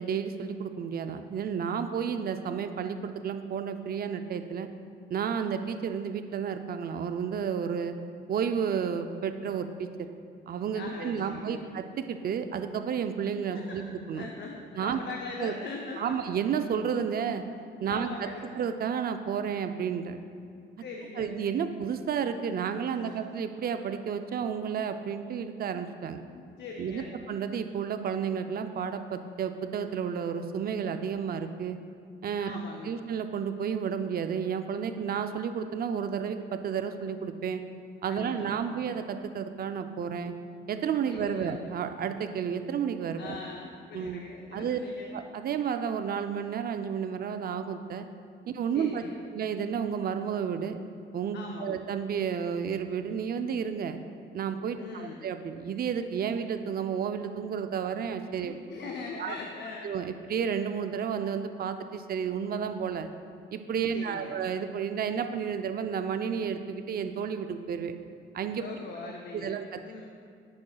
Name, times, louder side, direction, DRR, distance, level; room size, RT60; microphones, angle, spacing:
voice 1, 0.0-4.7 5.1-7.9 8.3-10.1 10.5-14.3 14.8-15.0 15.4-15.5 16.0-17.4 17.8-18.3 18.5-20.2 21.2-26.2 26.8-31.8 32.2-37.6 38.0-40.3 40.7-43.4 43.9-44.2 44.5-44.8 45.1-48.1 48.5-49.0 49.3-50.8 51.1-54.0 54.3-58.5 59.2-59.3 59.8-63.1 63.5-67.9 68.3-68.6 69.3-69.8, right 7 dB, 50° right, 8 dB, 0.4 m, -31 dB
voice 2, 10.7-11.6 13.5-16.2 17.8-18.5 20.8-21.4 23.0-23.2 26.2-27.2 32.4-33.0 38.1-38.7 41.1-41.5 43.2-45.2 48.7-49.2 51.3-51.8 54.7-55.2 58.4-59.9 63.9-64.4 68.6-70.1, left 4 dB, 60° left, 1 dB, 0.6 m, -41 dB
8.5 x 6.2 x 2.3 m, 2.4 s
cardioid pair, 90°, 20 cm